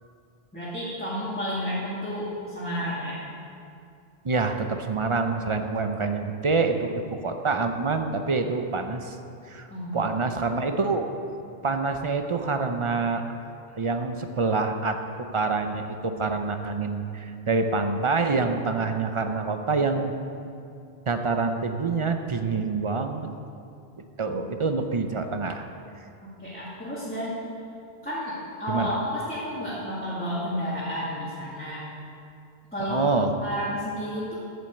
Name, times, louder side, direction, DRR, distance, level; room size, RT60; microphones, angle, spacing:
voice 1, 0.5-3.2 9.7-10.2 24.3-24.4 26.2-27.4 28.0-31.9 32.7-33.0 33.4-34.3, equal, 10° left, -11 dB, 2.2 m, -31 dB
voice 2, 4.2-9.2 9.5-9.7 9.9-11.1 11.6-13.2 13.7-20.1 21.1-23.3 24.2-25.7 28.7-28.9 32.9-33.3, right 4 dB, 35° right, 6 dB, 0.6 m, -26 dB
8.5 x 7.4 x 7.8 m, 2.5 s
omnidirectional pair, 1.1 m